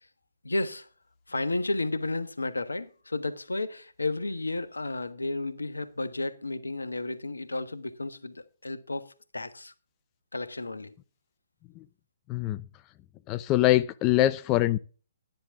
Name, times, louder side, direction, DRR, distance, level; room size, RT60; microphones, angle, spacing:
voice 1, 0.4-0.9 1.3-9.7 10.3-10.9, left 2 dB, 85° left, 1.2 m, -32 dB
voice 2, 12.3-12.6 13.3-14.8, left 15 dB, 25° left, 0.5 m, -23 dB
12.0 x 10.5 x 3.7 m
figure-of-eight pair, 130°, 0 cm